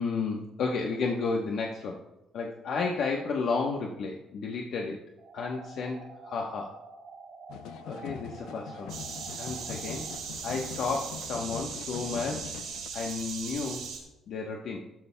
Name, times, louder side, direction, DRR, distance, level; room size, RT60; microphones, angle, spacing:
voice 1, 0.0-2.0 2.3-5.0 5.3-6.8 7.8-8.9 9.4-10.0 10.4-12.6 12.9-13.9 14.3-14.8, left 4 dB, 60° left, 0 dB, 1.0 m, -32 dB
sound 1, 5.2-10.2, right 4 dB, 55° right, 1.8 m, -48 dB
sound 2, 7.5-12.9, left 10 dB, 90° left, 0.4 m, -43 dB
sound 3, 8.9-14.0, right 6 dB, 80° right, 3.3 m, -39 dB
14.0 x 13.0 x 2.2 m, 0.96 s
cardioid pair, 150°, 0 cm